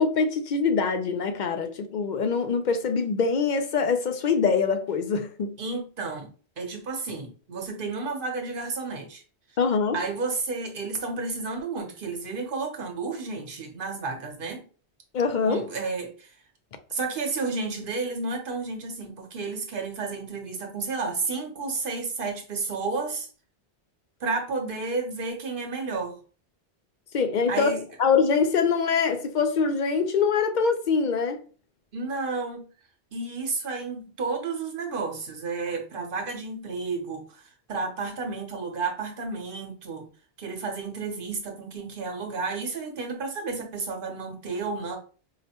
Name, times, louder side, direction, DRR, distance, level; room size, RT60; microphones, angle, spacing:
voice 1, 0.0-5.6 9.6-10.0 15.1-15.6 27.1-31.4, left 5 dB, 55° left, 0.5 m, -24 dB
voice 2, 5.6-6.3 6.6-9.2 9.9-14.6 15.4-16.3 16.9-23.3 24.2-26.2 27.5-27.8 31.9-32.7 33.1-37.4 37.7-40.1 40.4-45.0, right 4 dB, 55° right, 1.0 m, -31 dB
4.7 x 2.1 x 2.8 m
omnidirectional pair, 1.1 m